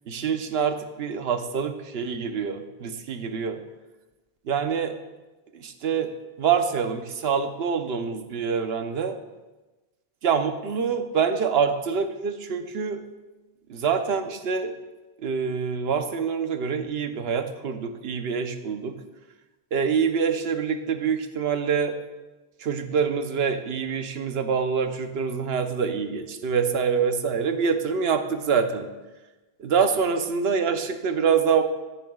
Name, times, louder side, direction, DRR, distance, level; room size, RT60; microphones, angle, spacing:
voice 1, 0.1-3.6 4.5-5.0 5.5-6.1 6.4-9.2 10.2-13.0 13.7-14.7 15.2-18.9 19.7-22.0 22.6-28.9 29.6-31.6, right 6 dB, 70° right, 8 dB, 1.0 m, -25 dB
14.0 x 9.3 x 2.3 m, 1.1 s
omnidirectional pair, 1.1 m